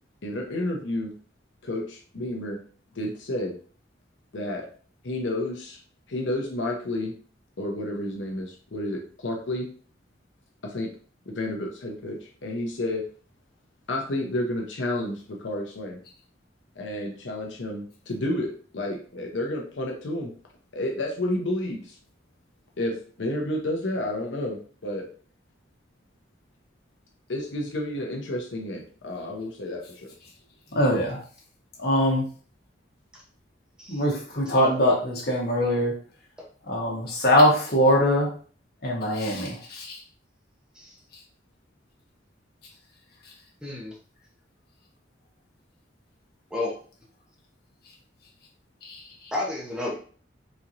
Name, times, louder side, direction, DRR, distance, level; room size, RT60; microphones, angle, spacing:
voice 1, 0.2-1.1 1.6-2.6 2.9-3.6 4.3-4.7 5.0-5.8 6.1-7.1 7.6-9.7 10.6-10.9 11.3-13.1 13.9-16.0 16.8-20.3 20.7-22.0 22.8-25.1 27.3-30.1, left 1 dB, 80° left, 0 dB, 0.7 m, -30 dB
voice 2, 30.7-31.2 31.8-32.3 33.9-35.9 36.7-38.3 38.8-39.9 48.8-49.0, equal, 55° left, -2 dB, 1.2 m, -22 dB
voice 3, 43.6-43.9 46.5-46.7 49.3-50.0, left 2 dB, 5° right, -3 dB, 0.7 m, -31 dB
4.2 x 2.9 x 2.5 m, 0.43 s
head